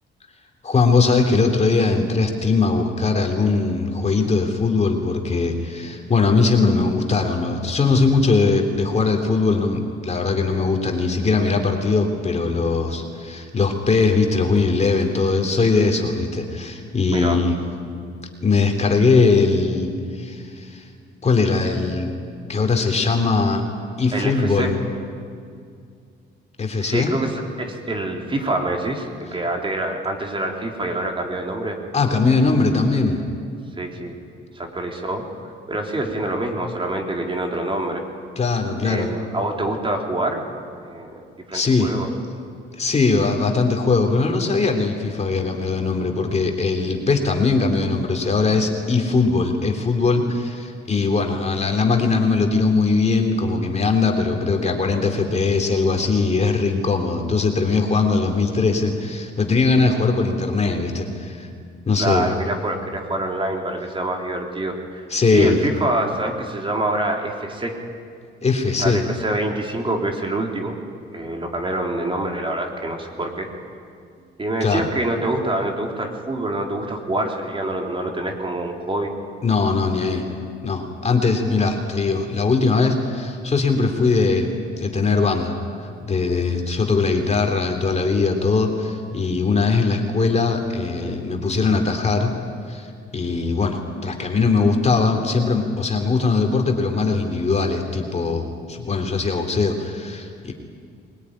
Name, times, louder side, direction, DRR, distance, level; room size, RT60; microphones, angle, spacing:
voice 1, 0.6-17.6 18.4-20.9 21.2-22.1 22.5-23.6 24.0-24.8 26.6-27.2 31.9-33.2 38.4-39.1 41.5-41.9 42.7-61.5 61.9-62.3 65.1-65.6 68.4-69.0 74.6-74.9 79.4-80.2 80.6-85.6 86.0-92.3 92.7-100.5, left 4 dB, 35° left, 3 dB, 3.3 m, -20 dB
voice 2, 17.1-17.4 24.1-24.8 26.8-31.8 33.8-34.1 34.5-35.3 35.7-38.0 38.8-40.4 40.8-42.1 62.0-65.0 65.3-67.8 68.8-70.8 71.1-73.5 74.4-79.1, right 1 dB, 25° right, 2 dB, 3.8 m, -26 dB
21.5 x 20.0 x 10.0 m, 2.3 s
cardioid pair, 90°, 20 cm